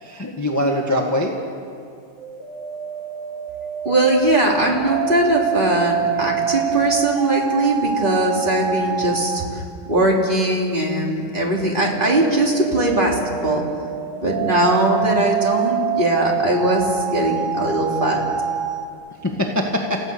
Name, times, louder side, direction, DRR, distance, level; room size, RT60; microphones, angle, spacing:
voice 1, 0.0-1.3 19.2-20.0, left 1 dB, 10° left, 0 dB, 1.6 m, -22 dB
sound 1, 2.2-9.5 11.6-18.9, right 8 dB, 80° right, 2.2 m, -26 dB
voice 2, 3.8-9.6 9.9-13.6 14.2-18.2, right 1 dB, 25° right, -2 dB, 3.3 m, -20 dB
29.5 x 15.5 x 7.0 m, 2.4 s
omnidirectional pair, 2.2 m